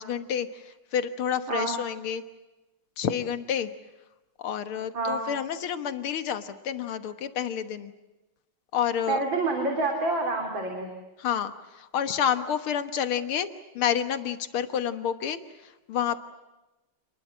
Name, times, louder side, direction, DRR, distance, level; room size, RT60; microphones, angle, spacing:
voice 1, 0.0-2.2 3.0-3.7 4.4-7.9 8.7-9.2 11.2-13.5 13.8-16.2, left 8 dB, 85° left, 10 dB, 2.2 m, -29 dB
voice 2, 4.9-5.2 9.1-10.9, right 3 dB, 65° right, 3 dB, 4.1 m, -27 dB
28.5 x 21.0 x 7.5 m, 1.1 s
omnidirectional pair, 2.3 m